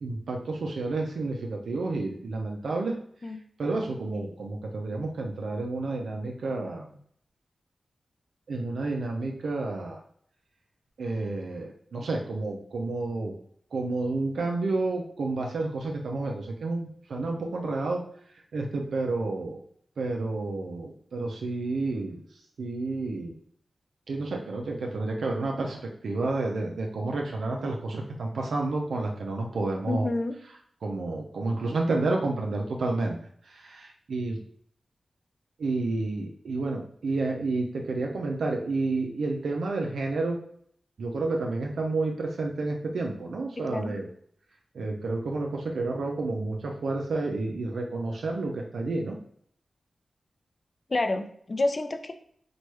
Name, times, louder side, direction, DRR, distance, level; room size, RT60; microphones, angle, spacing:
voice 1, 0.0-3.0 3.6-7.0 8.5-10.0 11.0-13.3 13.7-18.0 18.5-19.6 20.0-22.2 22.6-23.3 24.1-25.8 26.0-30.1 30.8-33.2 33.5-34.4 35.6-40.4 41.0-44.1 44.7-49.2, right 3 dB, 85° right, 0 dB, 0.3 m, -30 dB
voice 2, 29.9-30.4 43.6-44.0 50.9-52.1, left 2 dB, 45° left, 8 dB, 0.3 m, -29 dB
3.0 x 2.2 x 3.0 m, 0.64 s
cardioid pair, 55°, 0 cm